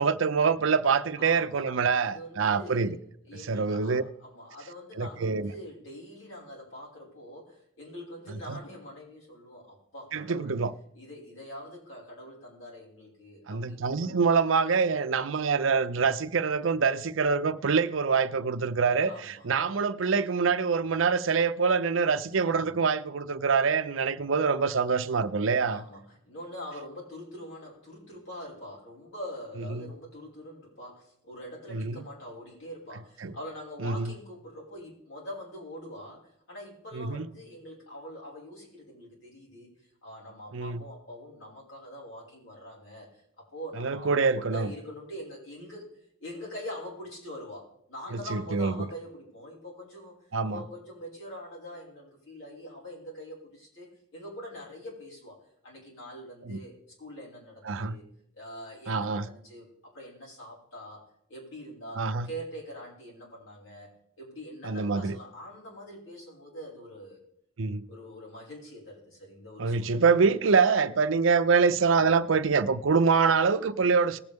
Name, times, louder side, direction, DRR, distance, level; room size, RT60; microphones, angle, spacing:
voice 1, 0.0-3.0 3.5-4.0 5.0-5.5 8.3-8.6 10.1-10.7 13.5-25.8 29.7-29.9 31.7-32.0 33.2-33.3 33.8-34.1 36.9-37.3 40.5-40.8 43.8-44.7 48.1-48.8 50.3-50.6 56.4-56.6 57.6-58.0 58.9-59.3 62.0-62.3 64.6-65.2 67.6-67.9 69.6-74.2, right 5 dB, 80° right, 0.6 m, -25 dB
voice 2, 1.2-1.7 1.9-3.0 3.2-10.6 10.9-14.1 19.1-19.5 22.4-22.8 25.7-39.7 40.0-45.9 46.2-50.1 50.4-55.4 55.6-56.7 57.0-58.0 58.3-61.0 61.3-67.2 67.9-70.1, equal, 80° left, 5.4 m, -44 dB
19.5 x 7.8 x 3.6 m
head